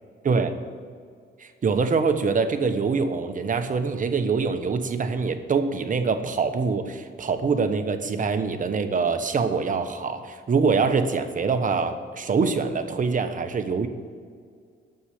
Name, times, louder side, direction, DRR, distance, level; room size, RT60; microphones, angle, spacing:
voice 1, 0.2-0.6 1.4-13.9, right 5 dB, 40° right, 8 dB, 1.1 m, -24 dB
9.3 x 7.7 x 8.4 m, 2.1 s
cardioid pair, 90°, 20 cm